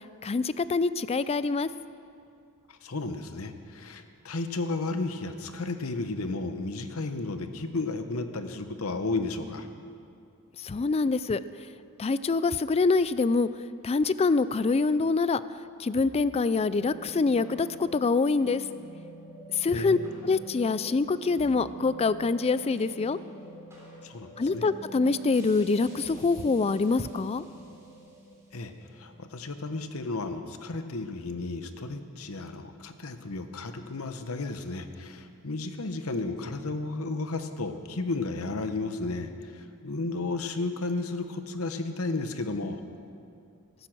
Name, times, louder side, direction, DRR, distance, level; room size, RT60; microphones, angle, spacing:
voice 1, 0.2-1.7 10.6-11.4 12.0-13.5 13.8-15.4 15.8-18.6 19.6-20.0 20.2-23.2 24.4-27.4, left 4 dB, 30° left, 15 dB, 0.3 m, -25 dB
voice 2, 2.7-9.7 19.7-20.0 24.0-24.6 28.5-42.8, left 3 dB, 70° left, 8 dB, 1.0 m, -33 dB
sound 1, 16.0-30.5, right 1 dB, 15° right, 3.5 m, -47 dB
15.0 x 13.5 x 6.1 m, 2.4 s
head